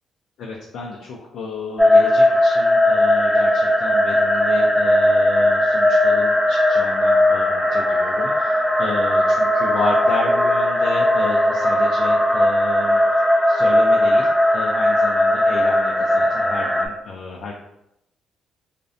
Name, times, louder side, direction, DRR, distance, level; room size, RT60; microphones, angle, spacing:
voice 1, 0.4-13.0 13.5-17.5, left 4 dB, 75° left, -2 dB, 0.3 m, -31 dB
sound 1, 1.8-16.9, left 1 dB, 5° right, 0.3 m, -18 dB
2.5 x 2.1 x 2.5 m, 0.83 s
cardioid pair, 90°, 0 cm